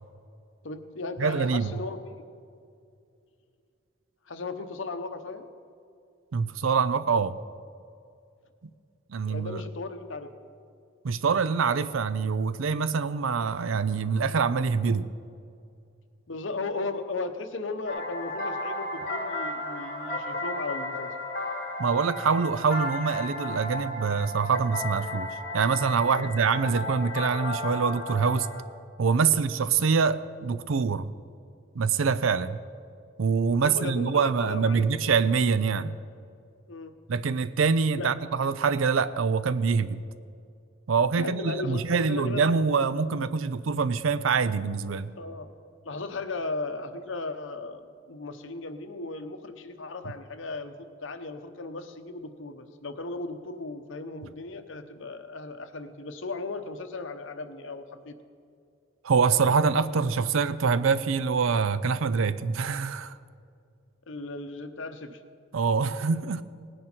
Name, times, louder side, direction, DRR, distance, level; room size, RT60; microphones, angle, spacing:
voice 1, 0.6-2.2 4.3-5.5 9.3-10.3 16.3-21.1 26.0-26.3 33.6-35.0 36.7-36.9 38.0-38.1 41.1-42.4 45.2-45.5 45.8-47.8 48.1-58.1 64.1-65.2, left 3 dB, 75° left, 0.9 m, -36 dB
voice 2, 1.2-1.7 6.3-7.4 9.1-9.6 11.0-15.1 21.8-28.5 29.0-31.1 31.7-32.6 33.2-35.9 37.1-40.0 40.9-45.1 59.0-63.1 65.5-66.4, right 5 dB, 90° right, 0.5 m, -25 dB
sound 1, 17.9-28.6, left 1 dB, 45° left, 1.4 m, -34 dB
18.5 x 10.0 x 4.5 m
head